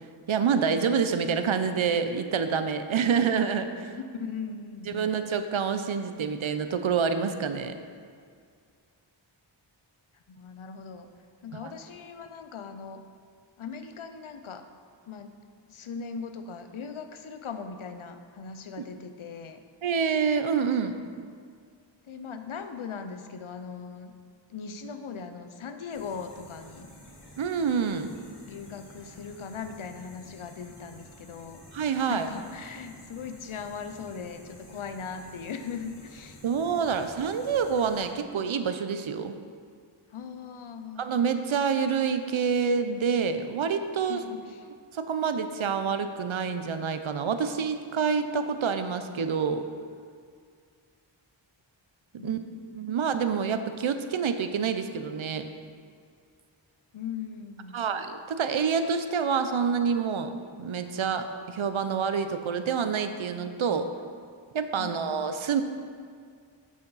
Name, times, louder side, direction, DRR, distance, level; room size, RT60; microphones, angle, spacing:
voice 1, 0.3-3.9 4.9-7.8 11.5-11.7 19.8-21.0 27.4-28.1 31.7-32.3 36.4-39.3 41.0-44.2 44.9-49.7 52.2-52.4 52.7-55.5 57.7-60.3 60.6-63.9 64.5-65.6, right 6 dB, 80° right, 9 dB, 0.6 m, -27 dB
voice 2, 3.9-5.1 10.1-11.1 11.4-13.0 13.6-14.6 15.1-15.3 15.7-19.6 22.0-24.1 24.5-26.9 28.3-31.6 32.1-36.4 40.1-41.2 44.0-44.7 52.2-53.0 56.9-57.8 64.8-65.3, left 6 dB, 90° left, 8 dB, 0.7 m, -39 dB
sound 1, 25.9-38.1, equal, 55° left, 2.0 m, -51 dB
8.5 x 6.9 x 4.0 m, 2.1 s
wide cardioid pair, 60°, 47 cm